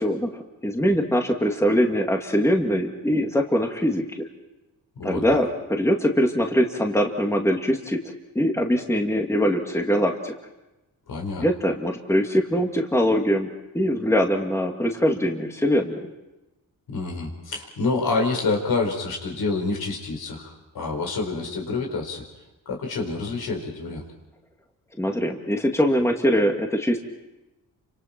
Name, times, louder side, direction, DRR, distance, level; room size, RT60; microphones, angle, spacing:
voice 1, 0.0-4.0 5.0-8.0 8.3-10.3 11.4-16.1 25.0-27.0, equal, 5° left, 2 dB, 2.2 m, -22 dB
voice 2, 11.1-11.4 16.9-22.2 22.6-24.0, left 3 dB, 75° left, 1 dB, 4.9 m, -27 dB
29.0 x 26.0 x 4.5 m, 0.99 s
cardioid pair, 90°, 37 cm